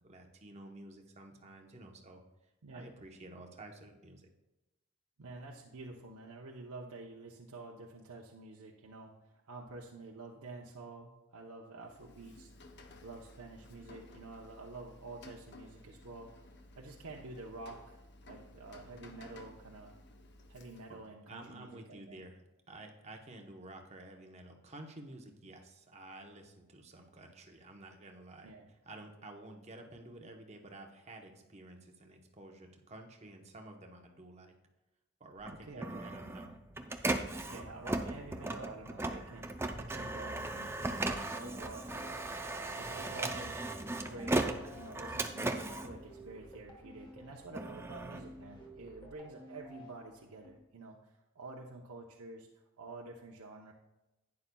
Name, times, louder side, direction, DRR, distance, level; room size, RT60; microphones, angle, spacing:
voice 1, 0.0-2.2 2.7-4.3 20.9-21.0 21.3-22.4 22.7-34.5 35.2-36.5, right 2 dB, 30° right, 3 dB, 0.9 m, -51 dB
voice 2, 5.2-12.5 13.0-19.9 20.5-22.3 28.4-28.7 35.5-36.1 37.5-43.6 44.0-53.7, right 3 dB, 90° right, -1 dB, 0.8 m, -49 dB
Rain, 11.8-21.1, left 2 dB, 50° left, 0.8 m, -56 dB
Printer, 35.4-46.8 47.3-49.1, right 2 dB, 10° right, 0.4 m, -37 dB
sound 1, 41.8-50.5, equal, 20° left, 1.2 m, -54 dB
11.0 x 9.5 x 2.3 m, 1.0 s
head